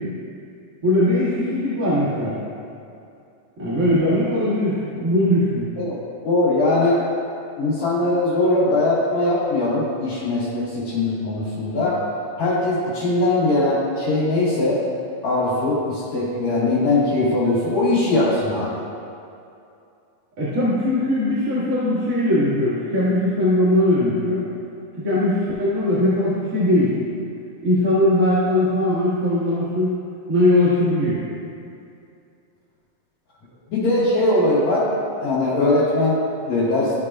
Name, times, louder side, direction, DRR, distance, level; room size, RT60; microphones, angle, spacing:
voice 1, 0.8-2.4 3.6-5.7 20.4-24.5 25.0-26.9 27.6-30.0 30.3-31.2, left 1 dB, 30° right, -12 dB, 2.0 m, -20 dB
voice 2, 6.2-7.0 7.6-12.0 12.4-14.8 15.2-18.8 33.7-34.8 35.2-36.2 36.5-36.9, left 2 dB, 75° left, -11 dB, 3.7 m, -20 dB
15.0 x 6.7 x 2.4 m, 2.6 s
omnidirectional pair, 3.4 m